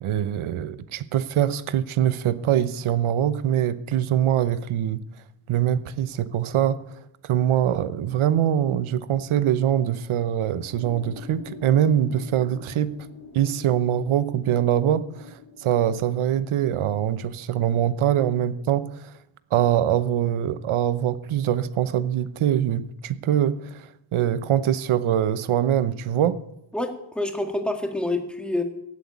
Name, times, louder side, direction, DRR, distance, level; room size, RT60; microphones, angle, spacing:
voice 1, 0.0-5.0 5.5-6.8 7.2-13.0 13.3-19.1 19.5-26.4, right 10 dB, 90° right, 0.9 m, -23 dB
sound 1, 10.7-17.0, left 5 dB, 70° left, 3.1 m, -45 dB
voice 2, 26.7-28.6, left 2 dB, ahead, 1.8 m, -27 dB
16.0 x 8.0 x 9.4 m
wide cardioid pair, 150°, 48 cm